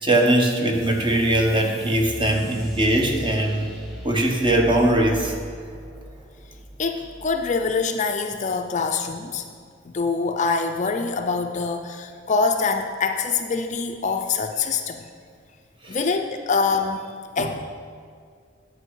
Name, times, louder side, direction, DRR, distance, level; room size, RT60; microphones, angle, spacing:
voice 1, 0.0-3.7 4.0-5.3 15.8-16.0 17.4-17.5, right 1 dB, 25° right, 2 dB, 1.0 m, -21 dB
sound 1, 0.7-7.8, equal, ahead, 1.3 m, -39 dB
voice 2, 6.8-9.5 9.8-15.1 15.9-17.7, left 4 dB, 35° left, 5 dB, 0.5 m, -25 dB
9.7 x 8.2 x 4.7 m, 2.1 s
head